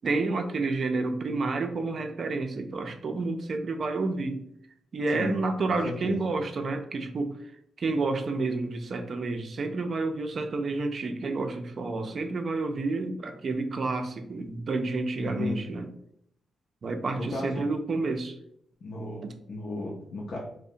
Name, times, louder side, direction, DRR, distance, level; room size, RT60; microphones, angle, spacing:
voice 1, 0.0-4.4 4.9-7.4 7.8-15.9 16.8-18.4 19.2-19.3, right 3 dB, 55° right, 0.4 m, -30 dB
voice 2, 5.7-6.3 15.1-15.6 17.2-17.7 18.8-19.2 19.5-20.4, left 2 dB, 65° left, 0.5 m, -34 dB
2.7 x 2.0 x 2.6 m
supercardioid pair, 60°, 0 cm